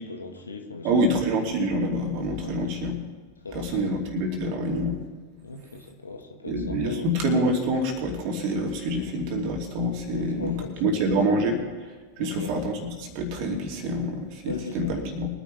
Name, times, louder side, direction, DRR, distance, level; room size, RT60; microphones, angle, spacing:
voice 1, 0.0-1.1 2.4-2.7 3.4-3.9 5.4-7.1 9.0-9.1 10.1-11.2 12.2-12.5 14.5-15.2, left 3 dB, 75° left, 3 dB, 1.7 m, -39 dB
voice 2, 0.8-3.0 3.5-5.0 6.5-10.5 10.8-11.9 12.2-15.3, right 1 dB, 45° right, 1 dB, 2.9 m, -26 dB
23.5 x 10.0 x 3.5 m, 1.4 s
figure-of-eight pair, 90°, 0 cm